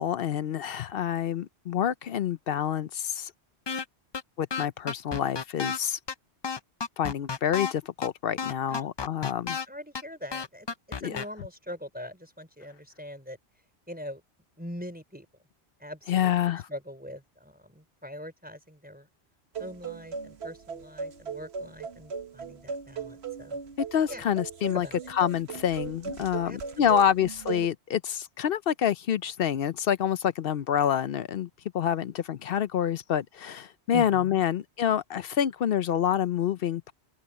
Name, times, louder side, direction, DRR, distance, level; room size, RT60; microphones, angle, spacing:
voice 1, 0.0-3.3 4.4-6.0 7.0-9.6 11.0-11.1 16.1-16.6 23.8-24.9 25.2-31.5 31.7-36.9, left 9 dB, 65° left, 0.8 m, -27 dB
sound 1, 3.7-3.8 4.1-4.2 4.5-5.8 6.1-6.2 6.4-7.7 8.0-8.1 8.4-9.6 9.9-10.0 10.3-11.2, left 5 dB, 35° left, 0.4 m, -31 dB
voice 2, 9.4-10.7 11.0-13.4 13.9-14.2 14.6-15.3 15.8-16.3 16.7-19.1 19.6-23.6 24.1-24.2 24.7-25.0 26.4-27.0 33.9-34.4, equal, 10° right, 4.3 m, -42 dB
sound 2, 19.6-27.7, right 6 dB, 70° right, 1.4 m, -38 dB
omnidirectional pair, 1.1 m